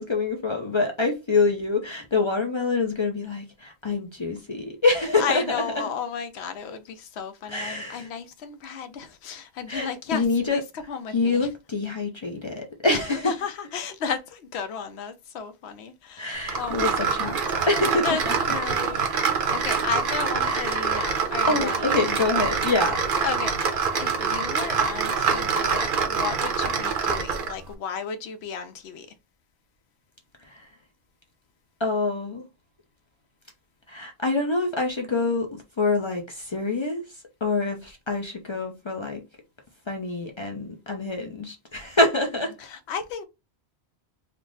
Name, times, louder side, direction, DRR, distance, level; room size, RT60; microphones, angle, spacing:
voice 1, 0.0-5.6 7.5-8.1 9.7-10.6 11.1-13.3 16.2-18.3 20.5-21.1 21.5-23.0 30.4-30.7 31.8-32.4 33.9-37.0 37.4-39.2 39.9-42.5, left 3 dB, 40° left, 0.4 m, -26 dB
voice 2, 5.2-11.5 12.9-17.3 18.0-22.0 23.2-29.1 42.2-43.2, left 6 dB, 80° left, 0.9 m, -33 dB
sound 1, 16.5-27.6, right 5 dB, 55° right, 0.8 m, -25 dB
3.3 x 2.0 x 3.8 m
omnidirectional pair, 1.1 m